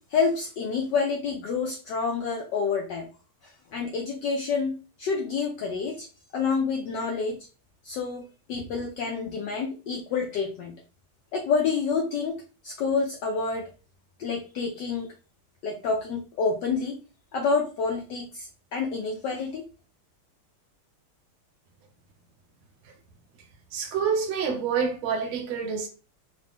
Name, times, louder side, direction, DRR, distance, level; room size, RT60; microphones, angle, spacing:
voice 1, 0.1-3.1 3.4-6.1 6.3-7.4 7.8-10.8 11.3-12.4 12.6-13.7 14.2-15.1 15.6-17.0 17.3-19.6, left 5 dB, 75° left, 1.0 m, -28 dB
voice 2, 23.7-25.9, right 6 dB, 75° right, 1.6 m, -27 dB
3.9 x 2.2 x 3.5 m
omnidirectional pair, 2.4 m